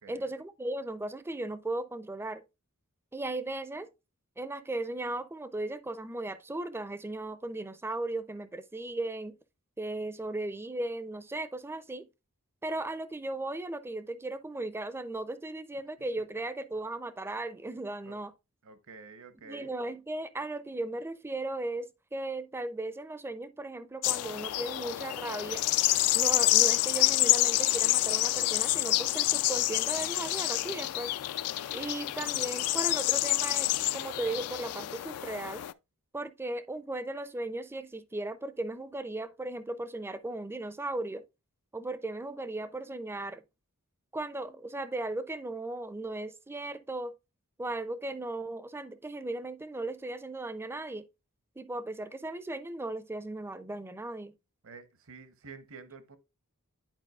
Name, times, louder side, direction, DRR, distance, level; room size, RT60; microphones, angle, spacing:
voice 1, 0.1-2.4 3.1-3.9 4.4-9.4 9.8-12.1 12.6-18.3 19.4-25.7 26.1-31.1 31.7-35.6 36.1-41.2 41.7-43.4 44.1-47.1 47.6-51.0 51.6-54.3, right 2 dB, 10° right, 0.4 m, -36 dB
voice 2, 18.6-19.7 54.6-56.2, right 4 dB, 65° right, 0.8 m, -49 dB
sound 1, 24.0-35.7, left 16 dB, 80° left, 0.3 m, -28 dB
10.5 x 4.5 x 2.3 m
head